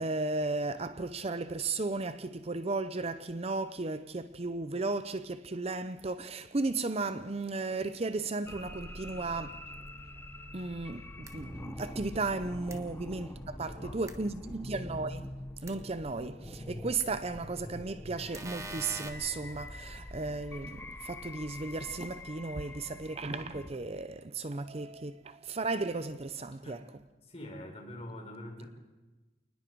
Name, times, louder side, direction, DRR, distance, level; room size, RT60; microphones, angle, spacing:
voice 1, 0.0-9.6 10.5-15.3 15.6-26.8, right 3 dB, 35° right, 0.6 m, -35 dB
sound 1, 8.5-23.7, left 1 dB, 10° left, 0.9 m, -45 dB
sound 2, 11.2-11.3 12.7-12.8 14.1-14.2 15.7-15.8 17.0-17.1 18.3-19.1, right 3 dB, 15° right, 1.5 m, -42 dB
voice 2, 13.7-14.2 14.4-14.5 26.6-26.8 27.2-28.7, left 1 dB, 35° left, 4.4 m, -45 dB
27.5 x 20.0 x 4.7 m
head